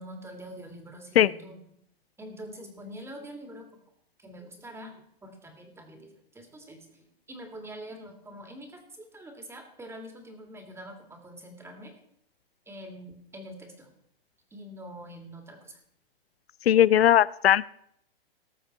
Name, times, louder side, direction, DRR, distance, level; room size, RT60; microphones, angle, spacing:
voice 1, 0.0-1.6 2.2-3.7 4.2-11.9 12.7-13.9 14.5-15.8, equal, 10° right, 4 dB, 2.5 m, -45 dB
voice 2, 16.7-17.7, left 11 dB, 90° left, 20 dB, 0.5 m, -19 dB
19.0 x 6.9 x 4.4 m, 0.71 s
hypercardioid pair, 125°, 30 cm